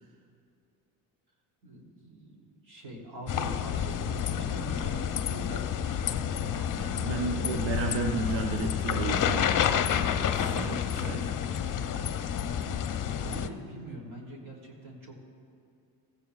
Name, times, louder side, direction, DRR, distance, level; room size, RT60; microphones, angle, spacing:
voice 1, 1.6-6.0 9.9-10.7 12.3-13.0 13.2-15.2, right 1 dB, 60° right, -1 dB, 2.9 m, -44 dB
sound 1, 3.3-13.5, left 8 dB, 45° left, 0.7 m, -29 dB
voice 2, 6.8-9.5 10.3-11.4, right 4 dB, 85° right, 3 dB, 0.9 m, -33 dB
16.0 x 15.5 x 2.3 m, 2.5 s
supercardioid pair, 60°, 44 cm